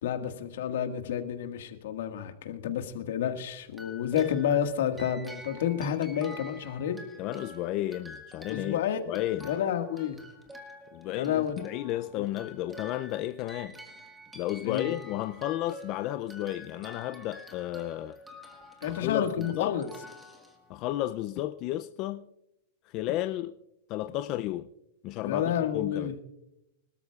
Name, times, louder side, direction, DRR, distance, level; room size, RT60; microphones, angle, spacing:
voice 1, 0.0-7.1 8.5-10.2 11.2-11.5 14.6-15.0 18.8-19.9 25.2-26.1, left 9 dB, 70° left, 1.7 m, -30 dB
sound 1, 3.7-21.1, equal, 5° right, 1.6 m, -48 dB
voice 2, 7.2-8.8 9.1-9.5 10.9-13.7 14.3-18.2 18.9-19.8 20.7-22.3 22.8-23.5 23.9-24.7 25.0-25.4 25.7-26.1, left 14 dB, 35° left, 0.4 m, -32 dB
25.5 x 13.0 x 2.4 m
supercardioid pair, 165°, 0 cm